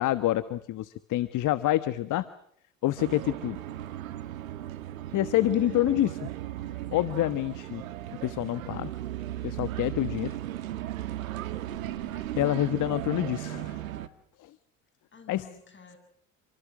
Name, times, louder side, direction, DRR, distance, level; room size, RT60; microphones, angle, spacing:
voice 1, 0.0-2.3 2.8-3.6 5.1-6.3 6.9-7.8 8.2-8.9 9.4-10.4 12.4-13.8 14.4-14.5 15.3-15.4, left 14 dB, 50° left, 1.4 m, -27 dB
sound 1, 3.0-14.1, right 13 dB, 80° right, 1.8 m, -36 dB
voice 2, 5.5-5.9 11.6-12.3 15.1-16.0, left 5 dB, 30° left, 7.1 m, -51 dB
29.0 x 24.5 x 6.3 m
hypercardioid pair, 75°, 40 cm